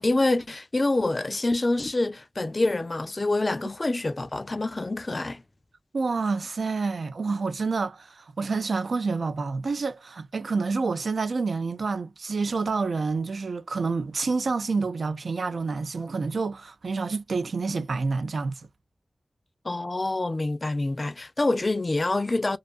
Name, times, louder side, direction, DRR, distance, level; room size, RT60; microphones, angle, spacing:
voice 1, 0.0-5.4 19.6-22.6, left 2 dB, 40° left, 0.3 m, -26 dB
voice 2, 5.9-18.7, right 4 dB, 85° right, 0.4 m, -28 dB
2.5 x 2.4 x 2.3 m
wide cardioid pair, 70°, 0 cm